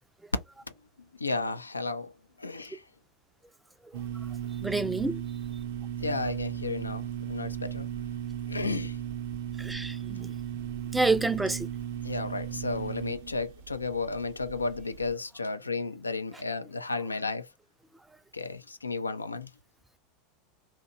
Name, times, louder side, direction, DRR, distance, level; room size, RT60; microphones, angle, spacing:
voice 1, 1.2-2.1 2.4-2.8 6.0-7.9 8.5-9.0 12.0-17.5 18.3-19.5, left 3 dB, 85° left, 0.4 m, -33 dB
sound 1, 3.9-15.1, right 10 dB, 60° right, 0.5 m, -36 dB
voice 2, 4.6-5.2 9.6-10.3 10.9-11.7, right 3 dB, 10° right, 0.4 m, -28 dB
2.7 x 2.2 x 3.8 m
figure-of-eight pair, 85°, 0 cm